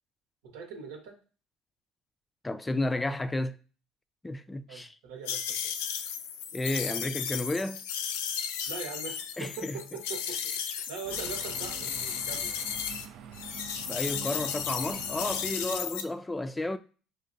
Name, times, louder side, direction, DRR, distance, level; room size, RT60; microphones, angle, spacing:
voice 1, 0.4-1.2 4.7-5.7 8.7-12.6, right 5 dB, 85° right, 1.0 m, -42 dB
voice 2, 2.4-3.6 4.2-4.9 6.5-7.8 9.4-9.8 13.9-16.8, left 2 dB, 15° left, 0.3 m, -32 dB
sound 1, 5.3-13.1 13.3-16.0, left 8 dB, 85° left, 0.4 m, -34 dB
sound 2, 11.0-16.0, right 9 dB, 65° right, 0.3 m, -46 dB
5.3 x 2.1 x 2.5 m
supercardioid pair, 80°, 0 cm